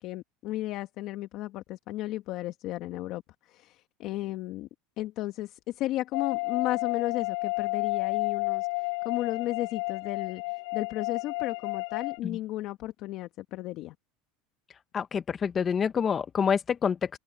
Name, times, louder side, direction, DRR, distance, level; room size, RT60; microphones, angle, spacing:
voice 1, 0.0-3.2 3.5-4.7 5.0-13.9, left 15 dB, 55° left, 1.4 m, -34 dB
sound 1, 6.1-12.2, left 28 dB, 80° left, 0.8 m, -31 dB
voice 2, 14.9-17.2, left 7 dB, 30° left, 1.3 m, -27 dB
open air
supercardioid pair, 115°, 0 cm